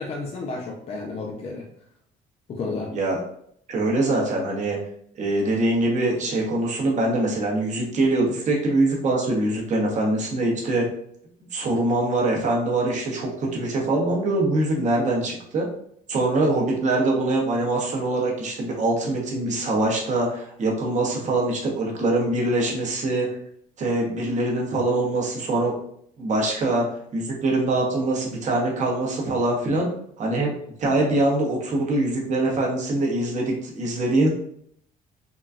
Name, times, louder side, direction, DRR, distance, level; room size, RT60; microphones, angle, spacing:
voice 1, 0.0-1.7 2.5-2.9, left 3 dB, 35° left, 0 dB, 0.5 m, -31 dB
voice 2, 3.7-4.8 5.2-10.9 11.5-15.7 16.1-23.3 23.8-25.7 26.2-26.9 27.1-29.9 30.2-30.5 30.8-34.3, right 2 dB, 45° right, -2 dB, 1.0 m, -23 dB
3.8 x 2.2 x 2.3 m, 0.68 s
cardioid pair, 110°, 17 cm